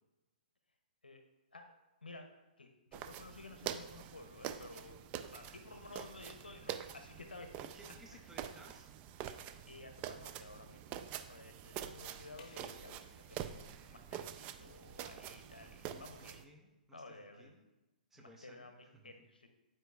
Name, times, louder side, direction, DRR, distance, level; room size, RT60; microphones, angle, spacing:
voice 1, 2.0-7.5 9.6-13.0 13.3-16.4 16.9-17.5 18.2-19.5, left 2 dB, 90° left, 6 dB, 0.7 m, -54 dB
sound 1, 2.9-16.4, right 10 dB, 30° right, 0.4 m, -46 dB
voice 2, 7.6-8.9 15.9-17.6 18.1-19.1, right 1 dB, 5° right, 1 dB, 0.8 m, -60 dB
sound 2, 12.4-15.0, left 4 dB, 50° left, 1.1 m, -64 dB
11.0 x 4.5 x 2.3 m, 1.0 s
hypercardioid pair, 125°, 5 cm